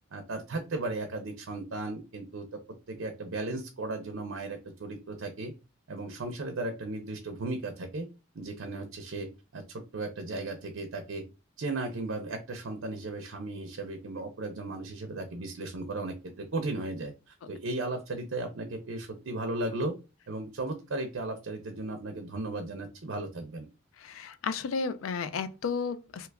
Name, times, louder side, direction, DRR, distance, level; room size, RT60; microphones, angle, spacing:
voice 1, 0.1-2.6 2.9-5.5 5.9-8.1 8.3-11.2 11.6-20.0 20.3-23.7, right 2 dB, 75° right, 0.6 m, -36 dB
voice 2, 24.0-26.3, left 5 dB, 85° left, 0.4 m, -33 dB
2.8 x 2.4 x 3.3 m
head